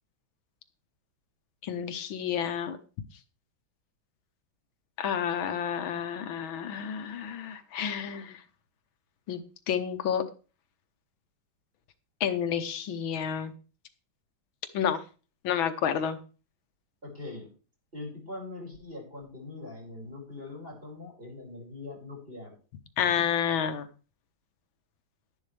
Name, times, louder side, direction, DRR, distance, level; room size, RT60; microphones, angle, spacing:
voice 1, 1.6-2.8 5.0-8.4 9.3-9.4 9.7-10.2 12.2-13.5 14.7-15.0 15.4-16.2 23.0-23.9, left 8 dB, 75° left, 9 dB, 1.8 m, -30 dB
voice 2, 17.0-17.5 17.9-22.5, left 2 dB, 25° right, -2 dB, 5.5 m, -42 dB
12.0 x 10.5 x 3.3 m, 0.35 s
omnidirectional pair, 2.2 m